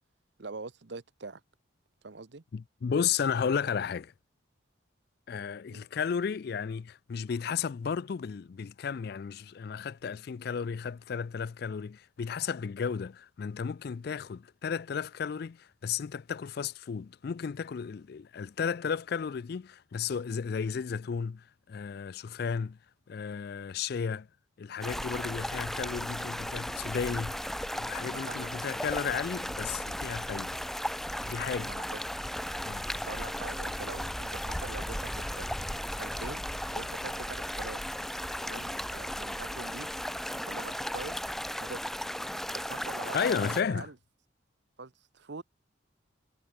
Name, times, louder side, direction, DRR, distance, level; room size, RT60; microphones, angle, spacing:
voice 1, 0.4-1.4 2.0-2.4 5.7-5.8 28.1-28.5 31.6-32.0 32.9-35.5 36.0-37.8 38.4-39.9 40.3-41.2 41.6-42.0 42.5-43.9 44.8-45.4, right 3 dB, 60° right, 0.9 m, -43 dB
voice 2, 2.5-4.1 5.3-22.8 23.1-24.3 24.6-27.5 27.8-30.6 31.2-31.7 32.6-32.8 43.1-43.9, left 6 dB, 50° left, 0.3 m, -33 dB
sound 1, 24.8-43.6, equal, ahead, 0.5 m, -36 dB
head